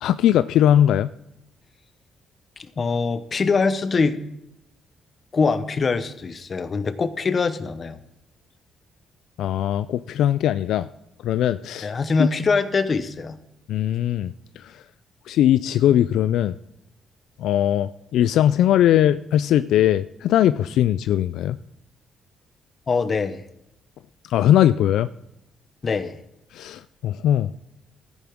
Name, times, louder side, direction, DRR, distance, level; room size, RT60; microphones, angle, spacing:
voice 1, 0.0-1.1 9.4-10.9 11.2-11.9 12.2-12.3 13.7-14.8 15.3-16.5 17.4-21.6 24.3-25.1 26.5-27.6, left 11 dB, 80° left, 13 dB, 0.3 m, -20 dB
voice 2, 2.8-4.2 5.3-8.0 11.8-13.4 22.9-23.4 25.8-26.2, left 4 dB, 40° left, 11 dB, 1.0 m, -23 dB
14.0 x 10.0 x 3.6 m, 0.86 s
cardioid pair, 90°, 0 cm